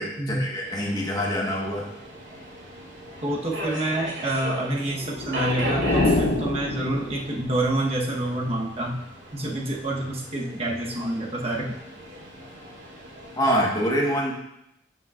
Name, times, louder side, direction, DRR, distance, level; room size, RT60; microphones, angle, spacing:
voice 1, 0.0-1.9 13.4-14.3, equal, 20° left, -3 dB, 1.3 m, -25 dB
Subway metro underground, 0.6-13.7, equal, 90° right, 2.0 m, -37 dB
voice 2, 3.2-9.0 9.3-11.7, right 1 dB, 30° right, -2 dB, 1.1 m, -27 dB
sound 1, 4.9-7.6, left 2 dB, 60° left, 0.8 m, -26 dB
11.0 x 5.4 x 2.4 m, 0.81 s
head